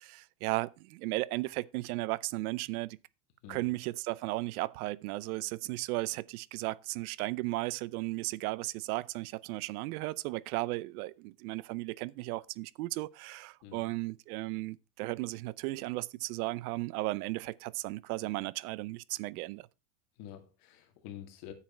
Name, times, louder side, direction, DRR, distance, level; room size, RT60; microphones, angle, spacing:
voice 1, 0.0-3.0 3.5-19.7, right 20 dB, 70° right, 0.6 m, -35 dB
voice 2, 3.4-3.7 13.6-13.9 20.2-21.5, left 11 dB, 55° left, 2.3 m, -48 dB
9.7 x 7.4 x 4.3 m
supercardioid pair, 140°, 46 cm